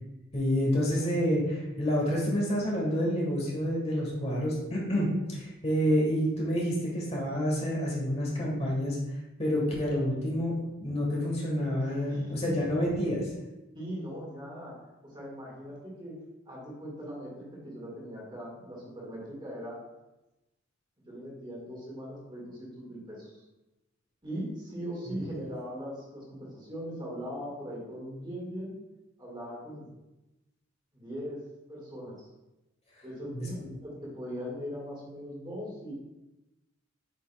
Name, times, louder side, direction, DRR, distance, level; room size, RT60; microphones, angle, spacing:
voice 1, 0.3-9.0 9.4-13.2 33.3-33.7, equal, 30° left, -3 dB, 1.4 m, -28 dB
voice 2, 11.8-12.6 13.7-14.7 15.0-16.2 16.5-19.8 21.1-23.4 24.2-28.7 29.2-29.9 30.9-31.4 31.7-32.3 33.0-35.9, equal, 20° right, -4 dB, 1.8 m, -40 dB
8.0 x 5.3 x 2.3 m, 0.99 s
head